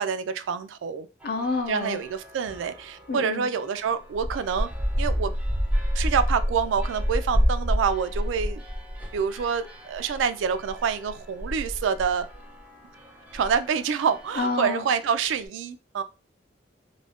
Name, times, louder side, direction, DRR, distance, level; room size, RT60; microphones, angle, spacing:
voice 1, 0.0-1.1 1.7-4.7 5.0-5.3 5.9-8.6 9.1-12.3 13.3-16.0, right 6 dB, 80° right, 0.3 m, -27 dB
voice 2, 1.2-2.0 3.1-3.5 14.4-14.8, left 3 dB, 55° left, 0.5 m, -28 dB
sound 1, 1.2-3.1 3.6-15.1, equal, 10° right, 0.4 m, -30 dB
2.4 x 2.1 x 3.4 m
head